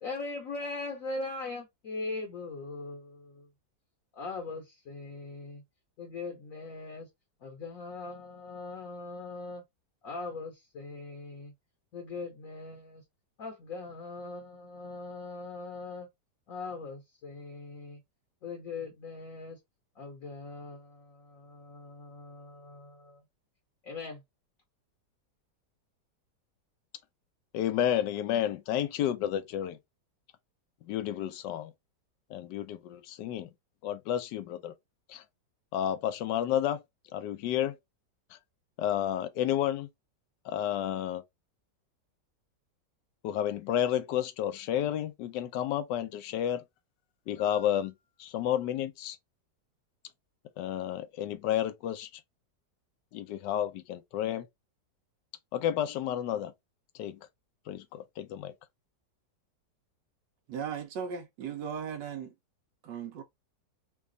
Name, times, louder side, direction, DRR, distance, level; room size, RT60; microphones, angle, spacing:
voice 1, 0.0-3.5 4.1-5.6 6.0-7.1 7.4-9.6 10.0-11.5 11.9-13.0 13.4-16.1 16.5-18.0 18.4-19.6 20.0-23.2 23.8-24.2, left 3 dB, 60° left, 1.1 m, -40 dB
voice 2, 27.5-29.8 30.8-31.7 32.3-33.5 33.8-34.7 35.1-35.2 35.7-36.8 37.1-37.8 38.8-39.9 40.4-41.2 43.2-46.6 47.3-47.9 48.2-49.2 50.6-52.2 53.1-54.4 55.5-56.5 57.0-57.2 57.7-58.5, left 11 dB, 80° left, 1.2 m, -31 dB
voice 3, 60.5-62.3 62.8-63.2, right 7 dB, 90° right, 1.3 m, -37 dB
3.2 x 2.3 x 3.7 m
omnidirectional pair, 1.9 m